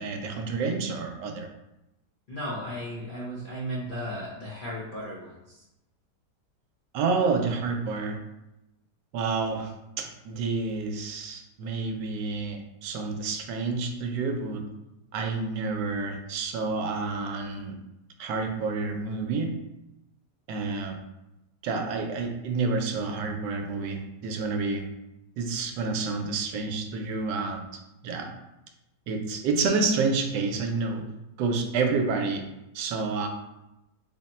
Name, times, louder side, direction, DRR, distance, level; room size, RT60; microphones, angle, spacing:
voice 1, 0.0-1.5 6.9-8.2 9.1-9.7 10.0-14.6 15.1-17.8 18.2-19.5 20.5-21.0 21.6-24.9 25.4-27.6 28.0-28.3 29.1-31.0 31.4-32.5 32.7-33.3, right 4 dB, 80° right, 4 dB, 1.2 m, -29 dB
voice 2, 2.3-5.6, equal, 65° left, -6 dB, 0.5 m, -35 dB
3.6 x 2.1 x 4.1 m, 0.92 s
omnidirectional pair, 1.9 m